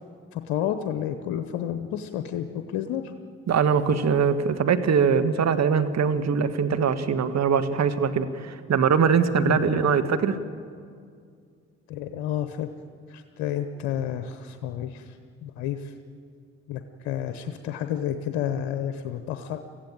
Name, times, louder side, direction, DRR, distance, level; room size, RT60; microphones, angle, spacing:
voice 1, 0.3-3.0 9.4-9.9 11.9-12.7 13.1-15.0 15.4-15.8 16.7-19.6, left 10 dB, 80° left, 9 dB, 1.0 m, -30 dB
voice 2, 3.5-10.4, right 6 dB, 55° right, 9 dB, 1.6 m, -22 dB
23.5 x 15.5 x 8.9 m, 2.2 s
hypercardioid pair, 45°, 32 cm